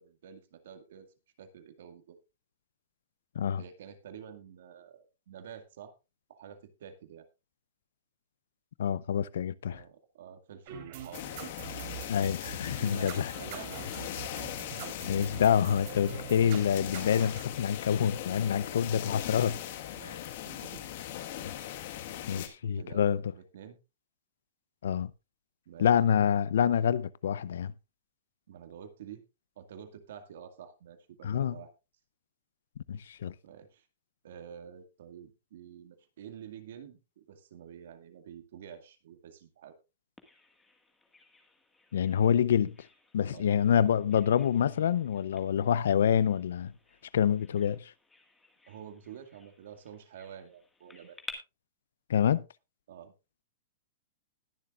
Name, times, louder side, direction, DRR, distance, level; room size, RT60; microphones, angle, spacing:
voice 1, 0.0-2.2 3.6-5.9 6.3-7.3 9.7-11.3 12.8-14.1 14.4-14.8 18.5-18.6 19.9-20.9 22.3-23.8 25.7-25.9 28.5-29.2 29.6-31.7 33.4-33.9 34.2-39.8 43.3-43.5 47.6-47.7 48.7-51.2 52.9-53.1, right 8 dB, 70° right, 2.0 m, -49 dB
voice 2, 8.8-9.8 12.1-13.3 15.1-19.6 20.0-20.2 21.4-21.5 22.3-23.2 24.8-25.1 25.8-27.7 31.2-31.6 32.9-33.3 41.9-42.7 43.1-46.7 47.1-47.9 52.1-52.4, left 8 dB, 80° left, 0.6 m, -27 dB
sound 1, 10.7-17.4, right 9 dB, 55° right, 3.7 m, -44 dB
sound 2, 11.1-22.5, left 12 dB, 55° left, 1.6 m, -40 dB
Bird vocalization bird call bird song, 40.2-51.3, left 3 dB, 10° left, 1.8 m, -54 dB
20.5 x 7.1 x 2.5 m
hypercardioid pair, 145°, 0 cm